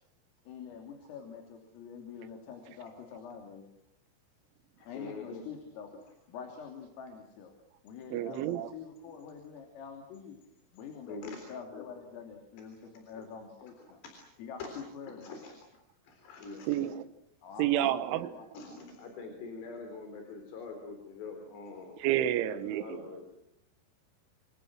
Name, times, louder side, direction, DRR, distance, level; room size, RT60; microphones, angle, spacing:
voice 1, 0.5-3.6 4.9-6.0 6.3-7.5 7.8-10.4 10.7-14.0 14.4-15.4 17.4-18.5, left 6 dB, 75° left, 5.7 m, -46 dB
voice 2, 4.8-5.4 11.1-11.4 14.0-14.2 14.6-14.7 15.2-15.6 16.1-16.9 18.5-22.0 22.5-23.3, left 4 dB, 55° left, 5.6 m, -44 dB
voice 3, 8.1-8.7 16.7-17.0 17.6-18.3 22.0-23.1, right 12 dB, 75° right, 3.5 m, -30 dB
28.5 x 27.5 x 6.2 m
omnidirectional pair, 6.0 m